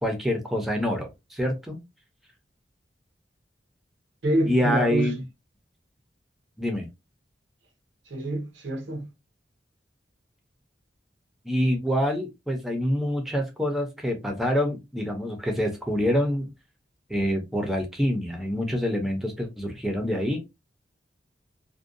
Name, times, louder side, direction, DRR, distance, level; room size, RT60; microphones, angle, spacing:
voice 1, 0.0-1.8 4.5-5.2 6.6-6.9 11.5-16.5 17.1-20.4, equal, ahead, 0.5 m, -26 dB
voice 2, 4.2-5.2 8.1-9.1, right 1 dB, 85° right, 0.7 m, -27 dB
2.6 x 2.1 x 2.5 m
head